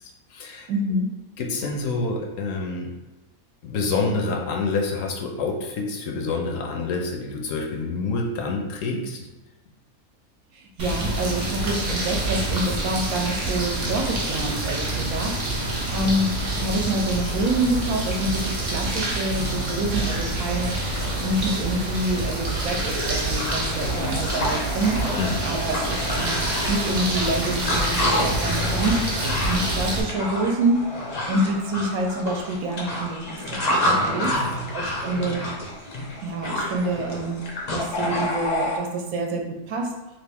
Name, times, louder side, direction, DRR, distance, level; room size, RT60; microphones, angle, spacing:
voice 1, 0.0-0.7 1.4-2.9 3.6-9.2 25.2-25.4 34.3-34.6, left 3 dB, 70° left, 2 dB, 0.9 m, -27 dB
voice 2, 0.7-1.1 10.5-20.9 21.2-25.1 25.4-26.4 26.7-29.0 29.5-31.0 31.3-34.3 34.7-35.5 36.2-37.4 37.7-39.9, right 1 dB, 75° right, 2 dB, 1.0 m, -27 dB
sound 1, 10.8-30.0, right 1 dB, 50° right, 0.5 m, -27 dB
sound 2, 22.3-38.8, left 2 dB, 85° left, 1.2 m, -37 dB
sound 3, 22.6-22.7 23.0-38.3, left 1 dB, 50° left, 0.5 m, -29 dB
3.2 x 2.5 x 3.4 m, 1.1 s
omnidirectional pair, 1.6 m